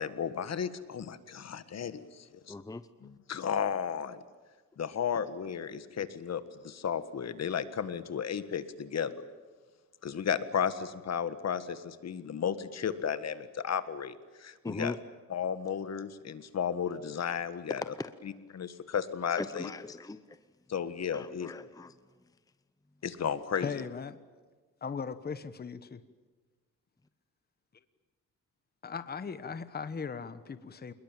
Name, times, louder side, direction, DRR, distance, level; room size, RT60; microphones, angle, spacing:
voice 1, 0.0-2.5 3.0-4.2 4.8-9.3 10.0-14.1 14.4-15.0 15.3-17.8 18.5-19.7 20.7-21.5 23.0-23.7, left 7 dB, 50° left, 12 dB, 1.7 m, -34 dB
voice 2, 2.5-2.9 14.6-15.0 17.8-18.1 19.3-20.4 21.1-21.9, left 3 dB, 10° left, 13 dB, 0.8 m, -39 dB
voice 3, 23.6-24.2 24.8-26.0 28.8-30.9, left 5 dB, 30° left, 13 dB, 1.2 m, -38 dB
27.0 x 21.0 x 9.1 m, 1.3 s
cardioid pair, 120°, 33 cm